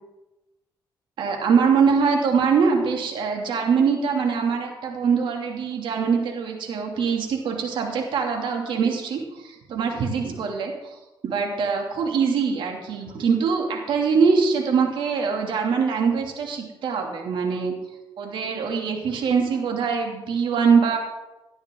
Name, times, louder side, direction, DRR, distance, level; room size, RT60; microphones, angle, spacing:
voice 1, 1.2-10.9 11.2-17.7 18.2-21.0, right 5 dB, 70° right, 2 dB, 2.9 m, -23 dB
18.5 x 11.0 x 3.9 m, 1.0 s
cardioid pair, 85°, 9 cm